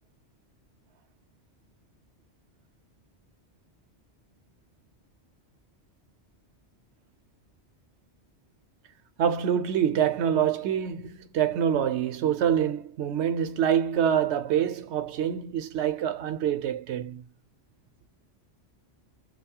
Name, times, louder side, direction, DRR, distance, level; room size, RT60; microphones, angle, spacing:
voice 1, 9.2-17.2, right 9 dB, 80° right, 0.9 m, -26 dB
2.7 x 2.3 x 2.7 m
omnidirectional pair, 1.2 m